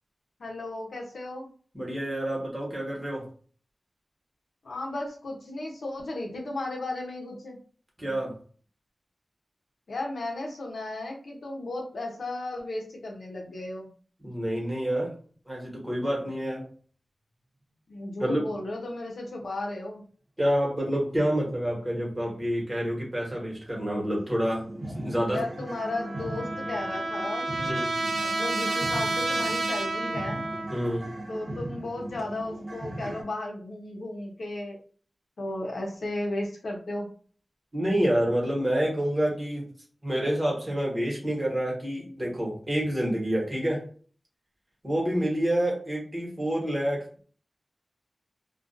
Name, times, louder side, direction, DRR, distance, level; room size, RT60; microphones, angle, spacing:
voice 1, 0.4-1.5 4.6-7.6 9.9-13.9 17.9-20.0 25.3-27.7 28.2-30.4 31.3-34.8 35.4-37.1, left 2 dB, 85° left, 0 dB, 0.7 m, -34 dB
voice 2, 1.7-3.2 8.0-8.3 14.2-15.1 15.5-16.7 18.2-18.4 20.4-24.7 24.9-25.4 27.7-28.0 30.7-31.1 37.7-39.7 40.0-43.9 44.8-47.2, equal, 20° right, -2 dB, 1.2 m, -28 dB
sound 1, 24.2-33.2, right 1 dB, 45° right, 0.8 m, -39 dB
Trumpet, 25.8-30.9, right 2 dB, 90° right, 0.4 m, -30 dB
2.4 x 2.3 x 2.5 m, 0.42 s
wide cardioid pair, 85°, 0 cm